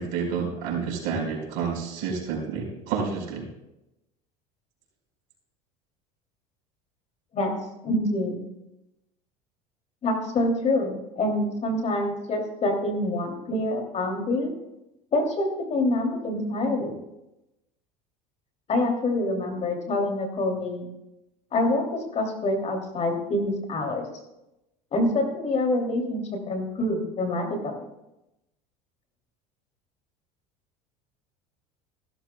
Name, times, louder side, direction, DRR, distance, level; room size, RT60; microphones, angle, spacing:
voice 1, 0.0-3.4, right 6 dB, 65° right, -1 dB, 4.8 m, -29 dB
voice 2, 7.8-8.4 10.0-14.5 15.1-16.9 18.7-20.9 21.5-24.1 24.9-27.8, left 1 dB, 40° left, 2 dB, 2.8 m, -26 dB
15.0 x 13.0 x 2.3 m, 0.91 s
supercardioid pair, 90°, 18 cm